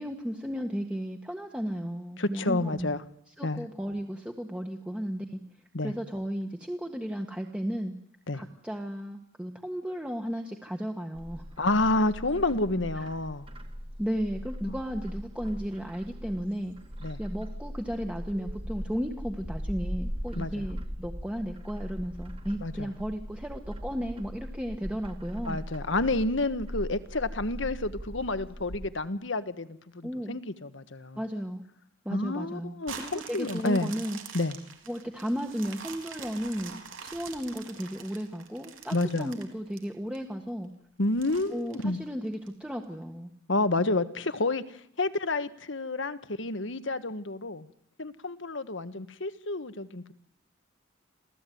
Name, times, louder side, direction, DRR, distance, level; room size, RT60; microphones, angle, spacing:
voice 1, 0.0-2.9 3.4-5.4 5.8-7.9 8.3-11.4 12.9-13.1 14.0-16.8 17.2-25.6 30.0-30.4 31.1-31.6 32.0-34.2 34.9-40.7 41.5-43.3, equal, 5° right, 3 dB, 1.5 m, -34 dB
voice 2, 2.2-3.0 3.4-3.7 5.7-5.9 8.3-8.4 11.6-13.5 14.6-14.7 17.0-17.2 20.4-20.6 22.6-22.9 25.4-31.2 32.1-33.9 34.3-34.6 38.9-39.3 41.0-42.0 43.5-44.6 45.0-47.7 48.0-50.1, left 2 dB, 70° left, 11 dB, 1.4 m, -29 dB
Bird, 11.1-28.9, equal, 30° right, 2.1 m, -39 dB
sound 1, 32.8-40.2 40.6-40.7 41.2-42.5 43.0-43.1, right 7 dB, 90° right, 3.9 m, -45 dB
27.5 x 16.5 x 9.4 m, 0.68 s
head